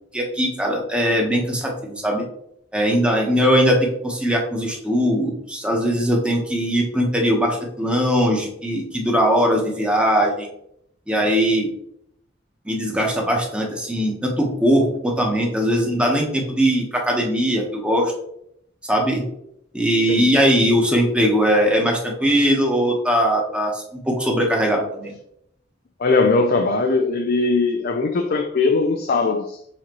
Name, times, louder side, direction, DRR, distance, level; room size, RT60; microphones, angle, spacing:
voice 1, 0.1-2.2 2.7-10.5 11.1-11.7 12.6-18.1 18.8-19.3 19.7-25.1, equal, 5° right, 1.3 m, -20 dB
voice 2, 26.0-29.6, left 3 dB, 55° left, 0.5 m, -20 dB
7.3 x 4.2 x 3.1 m
head